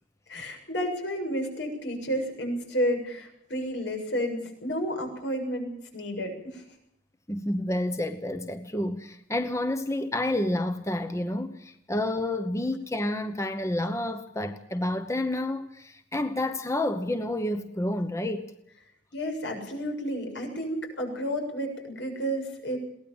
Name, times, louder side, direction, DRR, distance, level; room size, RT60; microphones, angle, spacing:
voice 1, 0.3-6.6 19.1-22.8, equal, 80° left, 7.2 m, -31 dB
voice 2, 7.3-18.5, left 1 dB, 15° left, 1.0 m, -29 dB
22.5 x 18.0 x 7.2 m
head